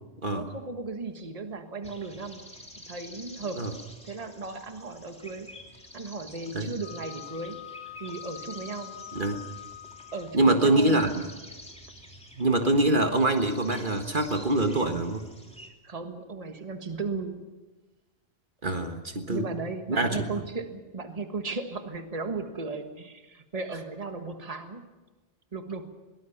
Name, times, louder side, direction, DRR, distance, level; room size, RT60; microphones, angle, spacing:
voice 1, 0.3-2.5 2.9-3.8 4.0-5.5 5.9-7.7 8.0-8.9 10.1-11.1 15.8-17.4 19.3-24.8 25.5-25.9, right 3 dB, 35° right, 6 dB, 1.6 m, -36 dB
sound 1, 1.8-15.7, equal, 5° left, 2.9 m, -49 dB
Wind instrument woodwind instrument, 6.8-10.4, left 13 dB, 65° left, 1.9 m, -44 dB
voice 2, 10.3-11.2 12.3-15.3 18.6-19.5 19.9-20.2, right 2 dB, 50° right, 5 dB, 1.6 m, -24 dB
22.5 x 18.5 x 7.2 m, 1.2 s
omnidirectional pair, 1.1 m